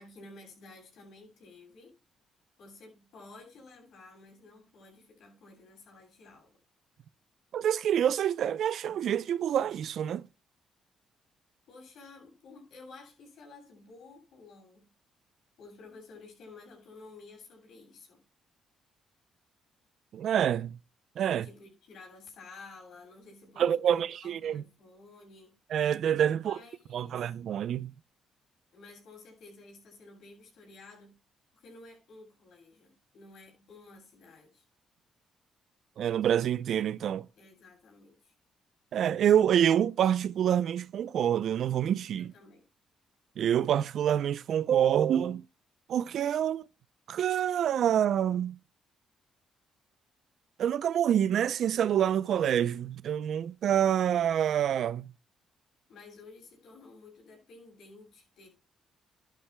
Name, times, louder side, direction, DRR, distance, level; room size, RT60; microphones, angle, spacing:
voice 1, 0.0-1.9 2.6-6.5 11.7-14.9 15.6-18.2 21.3-25.5 26.4-27.3 28.7-31.2 31.5-34.6 37.4-38.3 42.2-42.7 55.9-58.5, left 3 dB, 75° left, 7.3 m, -52 dB
voice 2, 7.5-10.2 20.1-20.8 21.2-21.5 23.6-24.6 25.7-26.6 26.9-27.9 36.0-37.3 38.9-42.3 43.4-45.4 45.9-46.6 47.1-48.6 50.6-55.1, right 9 dB, 70° right, 0.5 m, -27 dB
15.5 x 11.5 x 2.2 m
cardioid pair, 90°, 0 cm